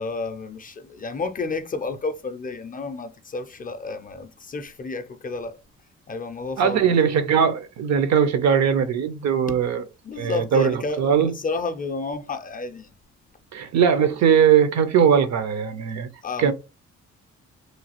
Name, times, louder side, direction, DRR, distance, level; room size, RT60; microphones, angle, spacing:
voice 1, 0.0-5.6 6.1-7.0 10.0-12.9 16.2-16.5, left 3 dB, 30° left, 0.4 m, -31 dB
voice 2, 6.6-9.8 10.2-11.3 13.5-16.1 16.4-16.5, right 7 dB, 60° right, 0.6 m, -20 dB
3.1 x 2.3 x 2.9 m
cardioid pair, 90°, 30 cm